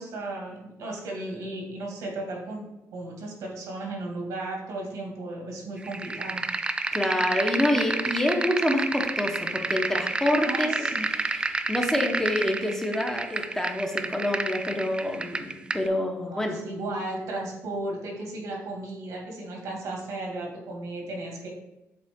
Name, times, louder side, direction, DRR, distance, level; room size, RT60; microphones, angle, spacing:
voice 1, 0.0-2.7 2.9-6.4 10.4-11.1 16.2-21.5, right 2 dB, 75° right, 0 dB, 1.9 m, -35 dB
sound 1, 5.8-15.9, right 3 dB, 15° right, 0.4 m, -30 dB
voice 2, 6.9-16.6, left 1 dB, 10° left, 2 dB, 0.9 m, -27 dB
7.6 x 3.7 x 3.6 m, 0.94 s
cardioid pair, 120°, 6 cm